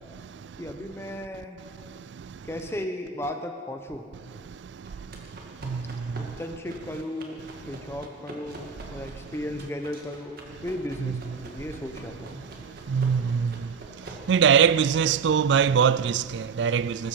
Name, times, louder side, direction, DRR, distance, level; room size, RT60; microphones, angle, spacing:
voice 1, 0.6-1.6 2.4-4.1 6.2-12.5, left 1 dB, 15° left, 0.8 m, -35 dB
sound 1, 4.9-15.3, right 1 dB, 50° right, 2.1 m, -46 dB
voice 2, 12.9-13.5 14.3-17.0, right 7 dB, 65° right, 0.3 m, -21 dB
21.5 x 13.0 x 5.0 m
head